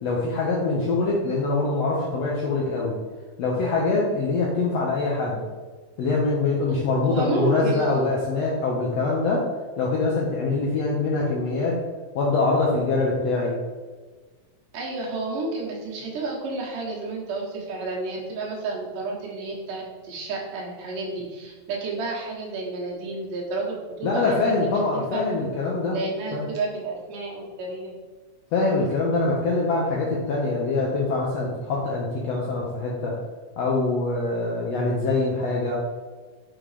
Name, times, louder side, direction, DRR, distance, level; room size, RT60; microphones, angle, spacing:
voice 1, 0.0-2.9 3.4-5.4 6.0-9.5 9.8-11.8 12.1-13.5 24.0-26.0 26.3-26.4 28.5-33.2 33.6-35.7, left 3 dB, 75° left, -3 dB, 1.6 m, -24 dB
voice 2, 7.0-8.1 14.7-25.2 25.9-27.9, right 3 dB, 75° right, -2 dB, 2.8 m, -31 dB
6.8 x 3.8 x 4.9 m, 1.4 s
omnidirectional pair, 3.9 m